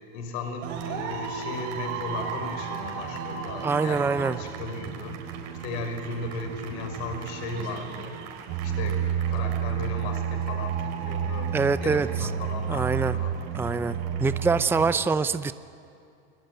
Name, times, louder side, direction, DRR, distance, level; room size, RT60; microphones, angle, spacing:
voice 1, 0.1-5.3 5.6-8.3 8.6-11.5 11.8-13.3 13.6-14.0, left 3 dB, 70° left, 6 dB, 5.4 m, -36 dB
sound 1, 0.6-14.9, right 8 dB, 70° right, 4.9 m, -32 dB
voice 2, 3.6-4.4 11.5-12.1 12.7-13.2 13.5-15.5, right 4 dB, 5° right, 12 dB, 0.5 m, -24 dB
29.0 x 21.0 x 9.2 m, 2.5 s
supercardioid pair, 115°, 34 cm